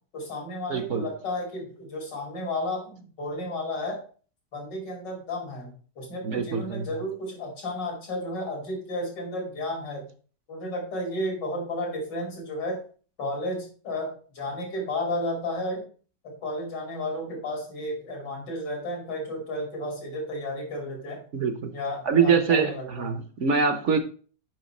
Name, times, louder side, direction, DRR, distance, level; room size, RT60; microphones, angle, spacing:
voice 1, 0.1-4.0 4.5-10.1 10.5-12.8 13.2-15.9 16.2-21.2 21.7-23.2, left 1 dB, 85° left, 3.2 m, -32 dB
voice 2, 0.7-1.0 6.2-6.8 21.3-21.7 22.1-22.7 23.0-24.0, right 6 dB, 55° right, 0.9 m, -23 dB
8.0 x 5.6 x 4.2 m
omnidirectional pair, 1.9 m